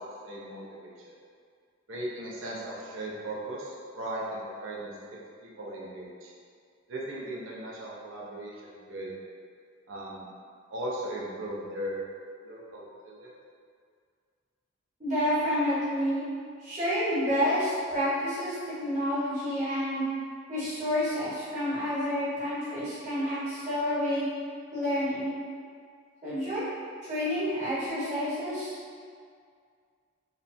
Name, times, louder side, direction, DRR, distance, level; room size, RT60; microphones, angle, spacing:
voice 1, 0.2-1.1 1.9-4.9 5.4-6.3 6.9-9.1 9.9-10.3 10.7-12.0 12.4-13.3, right 1 dB, 75° right, -4 dB, 0.5 m, -37 dB
voice 2, 15.0-16.2 16.6-20.0 20.5-24.2 24.7-25.4 26.2-26.7 27.0-28.7, equal, 35° right, -11 dB, 1.0 m, -29 dB
2.9 x 2.2 x 2.5 m, 2.1 s
head